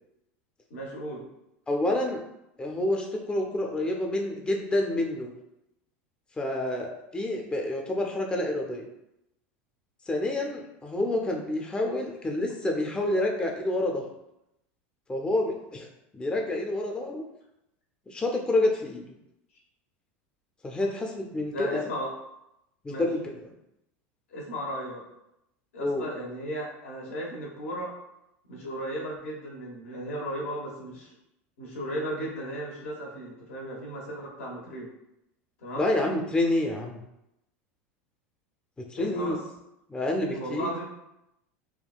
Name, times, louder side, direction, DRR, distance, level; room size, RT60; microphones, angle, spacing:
voice 1, 0.7-1.2 21.5-22.1 22.9-23.0 24.3-25.0 25.7-27.9 28.5-31.1 31.6-34.9 35.6-35.9 39.0-39.4 40.3-40.8, equal, 85° left, -2 dB, 1.0 m, -35 dB
voice 2, 1.7-2.2 2.6-5.3 6.4-8.9 10.1-14.0 15.1-15.9 16.1-17.2 18.1-19.0 20.6-21.9 22.8-23.2 25.8-26.0 35.8-37.0 38.9-39.4 39.9-40.7, left 1 dB, 15° left, 1 dB, 0.4 m, -28 dB
3.5 x 2.2 x 2.2 m, 0.85 s
hypercardioid pair, 100°, 7 cm